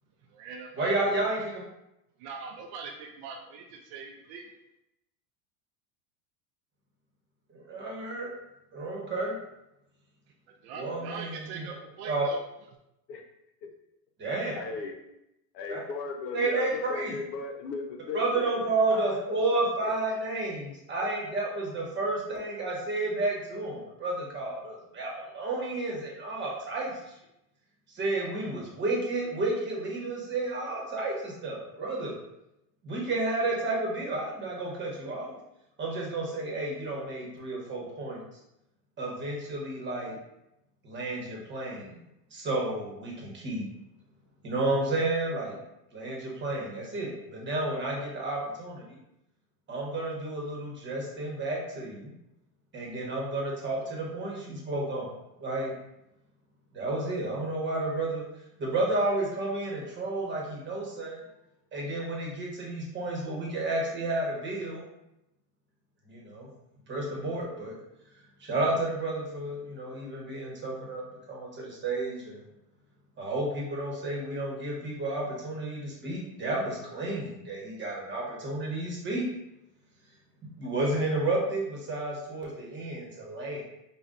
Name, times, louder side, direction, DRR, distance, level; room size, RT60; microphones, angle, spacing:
voice 1, 0.2-1.3 2.2-4.6 10.5-12.4, right 5 dB, 50° right, 3 dB, 0.5 m, -42 dB
voice 2, 0.8-1.6 7.5-8.3 8.7-9.4 10.7-11.7 12.0-12.2 14.2-14.6 15.7-15.8 16.3-17.1 18.1-27.0 27.9-32.2 32.8-35.4 35.8-38.2 39.0-40.1 40.8-42.0 42.3-43.7 44.4-45.6 45.9-48.8 49.7-52.1 52.7-55.1 55.4-55.7 56.7-58.3 58.6-61.2 61.7-64.8 66.1-66.5 66.9-67.7 68.4-72.4 73.2-79.3 80.6-83.6, right 2 dB, 25° right, -3 dB, 1.1 m, -31 dB
voice 3, 14.6-14.9 15.5-18.4 18.9-19.1 19.8-19.9, left 4 dB, 75° left, 3 dB, 0.8 m, -36 dB
5.0 x 2.4 x 2.5 m, 0.86 s
supercardioid pair, 125°, 48 cm